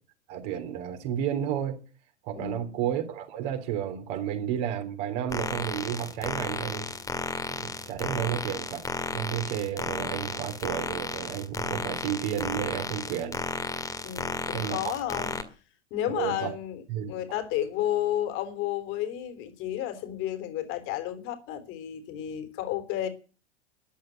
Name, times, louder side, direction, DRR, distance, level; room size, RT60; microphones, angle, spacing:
voice 1, 0.3-1.8 2.2-6.9 7.6-8.8 9.1-13.4 14.5-15.0 16.1-16.5 16.9-17.1, right 10 dB, 40° right, 3.5 m, -32 dB
voice 2, 2.3-2.9 14.0-15.4 15.9-23.1, left 12 dB, 35° left, 3.5 m, -32 dB
sound 1, 5.3-15.4, left 3 dB, 10° left, 2.0 m, -33 dB
14.0 x 11.0 x 8.0 m
figure-of-eight pair, 95°, 34 cm